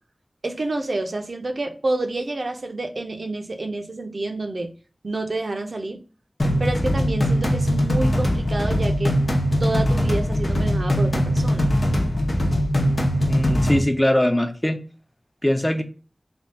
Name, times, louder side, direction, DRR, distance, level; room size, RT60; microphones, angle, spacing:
voice 1, 0.4-4.7 5.0-6.0 6.6-9.2 9.6-11.7, right 2 dB, 80° right, 0.6 m, -28 dB
sound 1, 6.4-13.8, equal, 80° left, 0.9 m, -21 dB
voice 2, 13.3-14.8 15.4-15.8, left 1 dB, 15° left, 0.6 m, -21 dB
3.4 x 2.4 x 4.0 m
wide cardioid pair, 65°, 0 cm